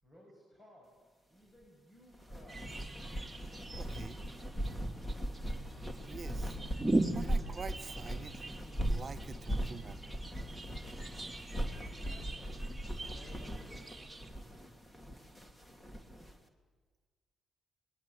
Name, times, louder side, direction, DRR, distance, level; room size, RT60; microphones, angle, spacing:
voice 1, 0.0-2.9 11.8-12.7 13.1-14.1, equal, 30° left, -1 dB, 6.6 m, -59 dB
sound 1, 2.1-16.3, right 1 dB, 15° left, 2.6 m, -39 dB
sound 2, 2.5-14.3, right 2 dB, 5° right, 2.9 m, -41 dB
voice 2, 3.7-4.2 6.0-6.6 7.0-10.0, right 5 dB, 40° right, 9 dB, 1.0 m, -47 dB
28.5 x 21.0 x 8.6 m, 1.4 s
cardioid pair, 90°, 0 cm